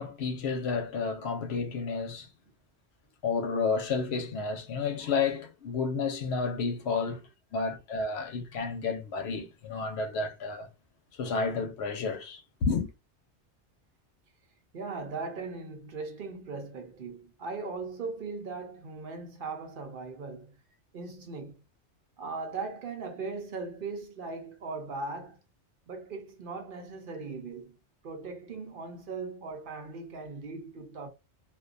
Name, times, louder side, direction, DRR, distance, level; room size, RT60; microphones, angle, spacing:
voice 1, 0.0-2.3 3.2-7.2 7.5-10.7 11.2-12.9, left 4 dB, 70° left, 0.9 m, -31 dB
voice 2, 14.7-20.5 20.9-21.6 22.2-25.4 25.9-27.8 28.0-31.1, right 4 dB, 55° right, 0.7 m, -39 dB
2.4 x 2.2 x 2.4 m
omnidirectional pair, 1.2 m